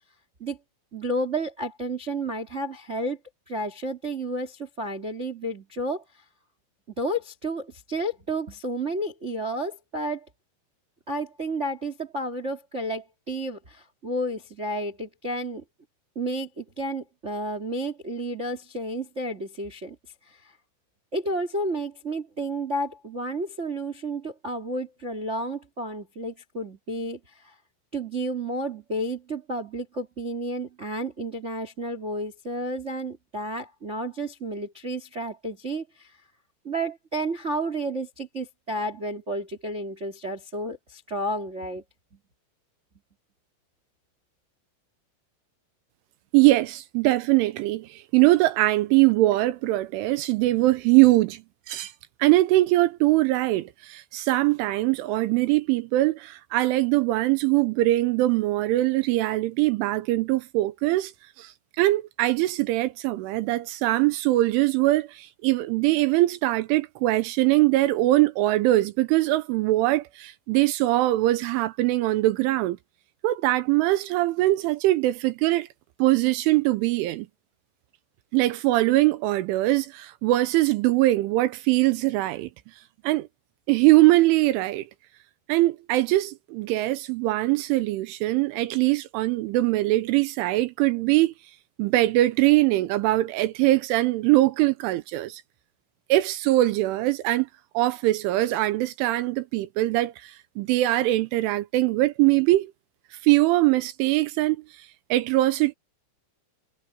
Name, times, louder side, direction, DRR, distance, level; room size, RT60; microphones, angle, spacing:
voice 1, 0.9-3.2 3.5-6.0 7.0-10.2 11.1-15.6 16.1-19.9 20.3-20.5 21.1-27.5 27.9-36.1 36.6-41.8, right 1 dB, 60° right, 0.7 m, -31 dB
voice 2, 46.3-51.4 51.7-51.9 52.2-61.1 61.4-72.8 73.2-75.7 76.0-77.3 78.3-82.5 83.0-83.3 83.7-84.9 85.5-91.3 91.8-95.4 96.1-97.5 97.7-102.7 103.2-105.7, right 17 dB, 80° right, 3.2 m, -22 dB
omnidirectional pair, 5.8 m